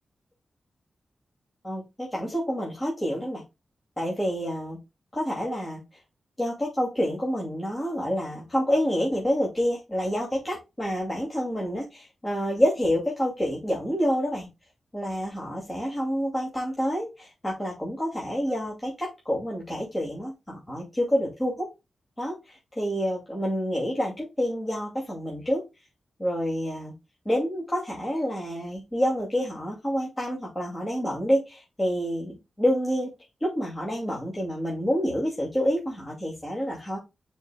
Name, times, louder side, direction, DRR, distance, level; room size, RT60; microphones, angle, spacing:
voice 1, 1.6-3.4 4.0-4.8 5.1-5.8 6.4-14.5 14.9-21.7 22.2-25.6 26.2-26.9 27.2-33.1 33.4-37.0, equal, 20° left, -3 dB, 2.5 m, -28 dB
9.2 x 4.7 x 2.3 m, 0.24 s
wide cardioid pair, 115°, 0 cm